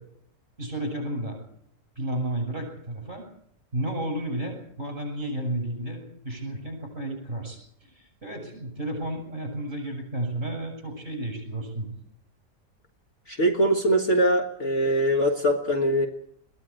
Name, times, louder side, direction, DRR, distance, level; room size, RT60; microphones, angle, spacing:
voice 1, 0.6-1.4 1.9-3.2 3.7-11.9, right 1 dB, 30° right, 4 dB, 8.1 m, -32 dB
voice 2, 13.3-16.1, right 1 dB, 45° left, 4 dB, 1.7 m, -22 dB
21.5 x 15.5 x 8.8 m, 0.70 s
omnidirectional pair, 1.8 m